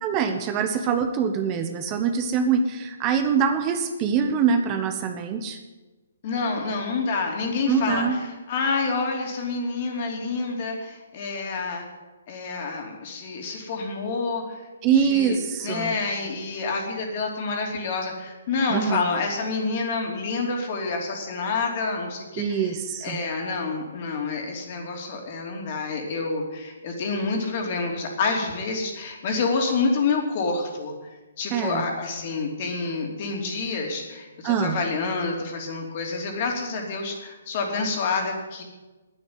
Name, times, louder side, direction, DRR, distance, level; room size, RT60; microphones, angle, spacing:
voice 1, 0.0-5.6 7.7-8.2 14.8-15.9 18.7-19.2 22.4-23.2 31.5-31.8 34.4-34.8, right 6 dB, 30° right, 7 dB, 1.1 m, -24 dB
voice 2, 6.2-11.8 12.3-14.6 14.9-22.7 23.0-30.9 31.4-38.6, left 4 dB, 45° left, 2 dB, 3.0 m, -28 dB
9.9 x 9.2 x 9.6 m, 1.2 s
hypercardioid pair, 140°, 0 cm